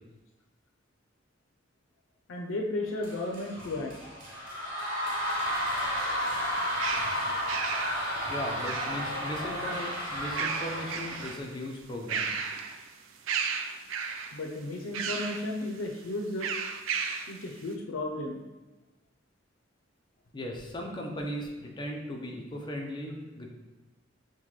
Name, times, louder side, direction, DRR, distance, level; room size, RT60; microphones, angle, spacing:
voice 1, 2.3-3.9 14.3-16.5 17.3-18.4, left 2 dB, 85° left, 1 dB, 0.5 m, -34 dB
sound 1, 3.0-11.3, equal, 50° right, 1.2 m, -32 dB
sound 2, 6.2-9.3 10.2-11.5 11.8-12.9 13.3-14.4 14.9-15.5 16.4-17.4, right 6 dB, 80° right, 0.4 m, -34 dB
voice 2, 8.3-12.3 20.3-23.5, left 1 dB, 25° left, 0 dB, 0.6 m, -37 dB
5.4 x 2.2 x 3.1 m, 1.1 s
head